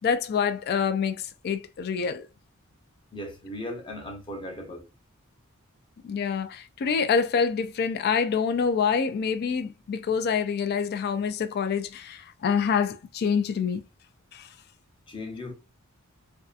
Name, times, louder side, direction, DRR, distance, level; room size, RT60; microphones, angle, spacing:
voice 1, 0.0-2.3 6.0-13.8 14.3-14.5, left 6 dB, 50° left, 0.3 m, -26 dB
voice 2, 3.1-4.9 15.1-15.5, left 1 dB, 25° left, 0.7 m, -37 dB
2.6 x 2.3 x 2.4 m
head